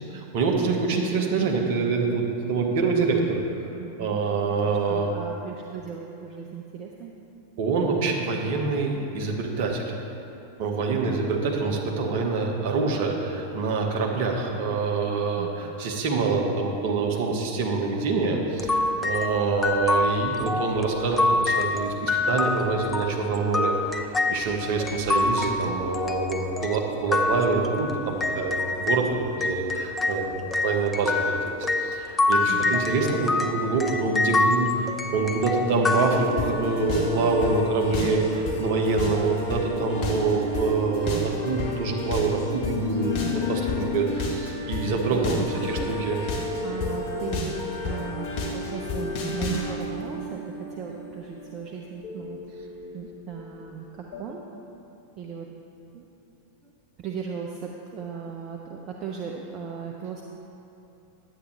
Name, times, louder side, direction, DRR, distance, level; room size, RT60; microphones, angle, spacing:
voice 1, 0.1-3.4 4.0-5.1 7.6-9.9 10.6-29.0 29.3-30.3 30.6-45.4 45.7-46.2, right 4 dB, 50° right, 1 dB, 1.1 m, -26 dB
voice 2, 3.8-4.2 4.7-7.1 10.9-11.2 15.4-15.8 32.5-32.8 45.3-46.1 46.6-47.6 47.8-52.4 52.9-54.4 55.2-55.5 55.9-56.1 56.6-56.7 57.0-60.2, right 6 dB, 35° right, -1 dB, 0.6 m, -37 dB
sound 1, 18.6-29.1 29.4-36.8, left 2 dB, 10° left, 0.5 m, -26 dB
sound 2, 36.0-53.7 54.1-54.2, left 3 dB, 40° left, 1.3 m, -31 dB
10.0 x 8.2 x 3.2 m, 2.9 s
figure-of-eight pair, 90°, 0 cm